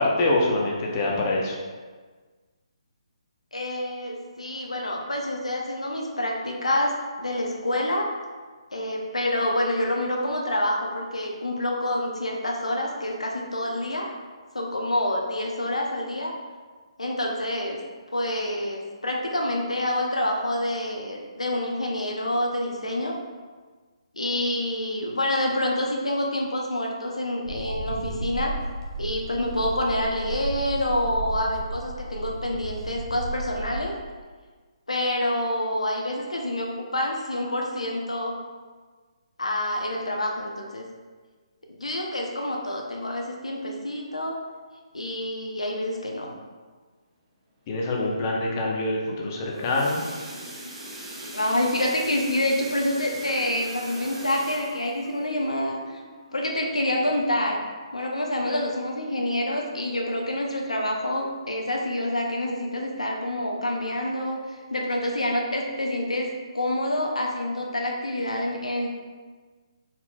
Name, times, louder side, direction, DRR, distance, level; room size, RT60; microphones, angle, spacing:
voice 1, 0.0-1.6 47.7-50.0, left 2 dB, 30° left, -2 dB, 0.7 m, -25 dB
voice 2, 3.5-8.1 8.7-14.1 14.5-16.3 17.0-17.8 18.1-23.1 24.2-28.5 29.0-33.9 34.9-38.3 39.4-40.8 41.7-44.3 44.9-46.3 51.3-56.0 56.3-57.6 57.9-66.3 66.5-68.9, left 1 dB, 80° left, 0 dB, 0.6 m, -27 dB
sound 1, 27.4-33.9, right 2 dB, 50° right, 0.9 m, -34 dB
sound 2, 49.2-57.8 58.3-58.5 58.8-58.9 59.4-59.5, right 1 dB, 15° right, 0.7 m, -41 dB
4.2 x 3.9 x 2.2 m, 1.4 s
figure-of-eight pair, 140°, 3 cm